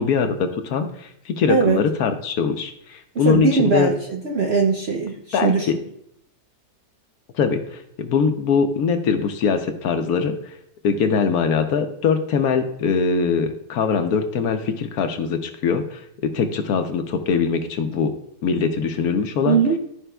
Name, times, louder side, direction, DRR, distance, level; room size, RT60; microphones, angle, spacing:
voice 1, 0.0-3.9 5.3-5.7 7.3-10.5 10.8-16.0 16.3-18.1 18.4-19.6, left 6 dB, 70° left, 6 dB, 1.1 m, -22 dB
voice 2, 1.5-1.8 3.1-5.7 19.5-19.8, right 5 dB, 60° right, 0 dB, 0.6 m, -20 dB
12.5 x 5.0 x 2.2 m, 0.71 s
omnidirectional pair, 1.8 m